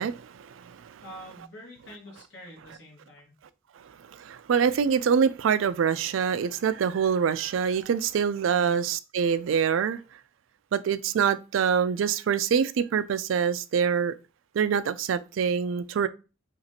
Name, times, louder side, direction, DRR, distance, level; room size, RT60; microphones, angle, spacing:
voice 1, 0.0-1.0 4.1-10.0 10.7-14.1 14.5-16.1, right 7 dB, 90° right, 0.4 m, -25 dB
voice 2, 1.0-3.4 8.5-8.8, equal, 60° left, 1.6 m, -46 dB
5.7 x 2.5 x 2.8 m
head